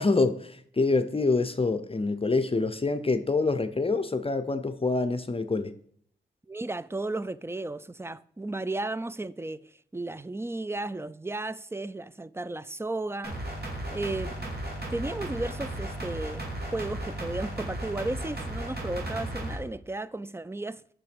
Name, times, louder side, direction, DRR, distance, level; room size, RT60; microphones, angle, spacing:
voice 1, 0.0-5.7, left 3 dB, 30° left, 0.7 m, -26 dB
voice 2, 6.5-13.4 13.9-14.5 14.9-16.4 16.7-20.8, right 2 dB, 15° right, 0.4 m, -34 dB
sound 1, 13.2-19.6, right 1 dB, 55° right, 2.5 m, -35 dB
6.8 x 6.0 x 5.1 m
cardioid pair, 45°, 19 cm